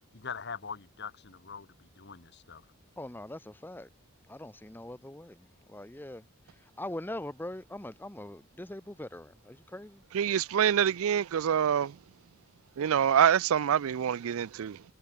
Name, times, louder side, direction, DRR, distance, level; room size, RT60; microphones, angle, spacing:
voice 1, 0.1-2.6, left 6 dB, 50° left, 1.4 m, -42 dB
voice 2, 3.0-3.9 4.3-10.0, left 1 dB, 10° left, 0.7 m, -42 dB
voice 3, 10.1-12.0 12.8-14.8, right 8 dB, 75° right, 0.4 m, -26 dB
head